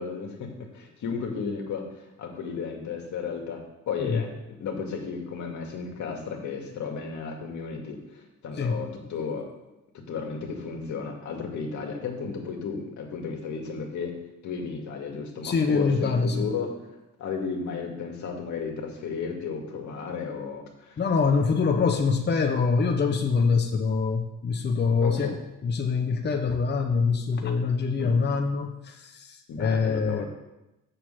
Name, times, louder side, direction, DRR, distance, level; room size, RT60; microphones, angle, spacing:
voice 1, 0.0-4.3 4.6-9.5 10.1-14.1 14.4-16.7 17.2-21.0 25.0-25.4 28.0-28.2 29.5-30.3, left 5 dB, 70° left, 1 dB, 2.1 m, -34 dB
voice 2, 15.4-16.5 21.0-25.4 25.6-30.3, left 5 dB, 35° left, 4 dB, 0.9 m, -24 dB
6.7 x 6.4 x 7.6 m, 0.96 s
cardioid pair, 90°, 30 cm